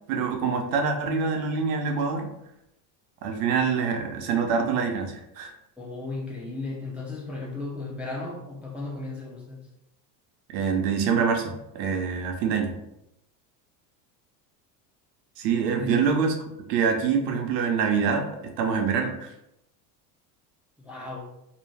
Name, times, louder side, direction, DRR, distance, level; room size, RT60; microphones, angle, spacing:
voice 1, 0.1-2.3 3.2-5.5 10.5-12.7 15.4-16.3 16.7-18.3 18.6-19.3, right 6 dB, 85° right, 3 dB, 0.7 m, -25 dB
voice 2, 5.8-9.7 15.7-16.1 20.8-21.2, left 3 dB, 5° right, -4 dB, 0.4 m, -35 dB
2.7 x 2.2 x 3.2 m, 0.83 s
supercardioid pair, 100°, 47 cm